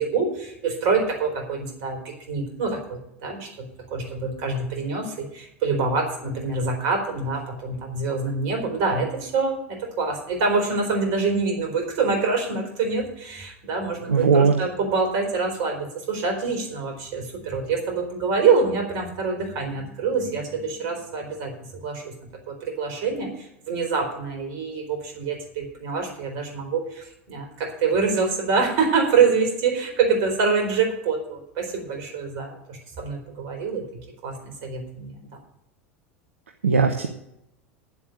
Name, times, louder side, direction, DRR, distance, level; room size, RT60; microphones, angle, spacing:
voice 1, 0.0-33.8 34.2-35.2, right 4 dB, 55° right, 3 dB, 4.2 m, -25 dB
voice 2, 14.1-14.6 36.6-37.1, right 5 dB, 75° right, 6 dB, 0.9 m, -18 dB
9.8 x 7.6 x 8.1 m, 0.81 s
figure-of-eight pair, 80°, 7 cm